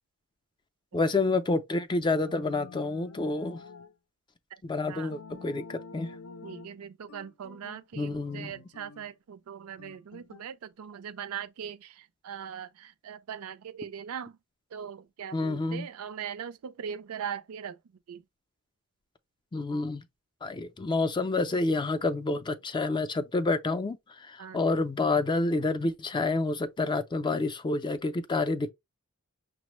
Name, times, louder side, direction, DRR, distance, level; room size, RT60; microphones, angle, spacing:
voice 1, 0.9-3.6 4.6-6.2 7.9-8.5 15.3-15.9 19.5-20.0 20.4-28.7, left 3 dB, 20° left, 0.4 m, -28 dB
sound 1, 2.2-3.9 5.1-6.8 7.1-9.1 9.8-10.5, left 4 dB, 75° left, 0.6 m, -48 dB
voice 2, 6.4-14.4 14.7-17.8 18.1-18.2 24.4-24.6, right 8 dB, 75° right, 0.4 m, -40 dB
5.8 x 2.0 x 3.0 m
head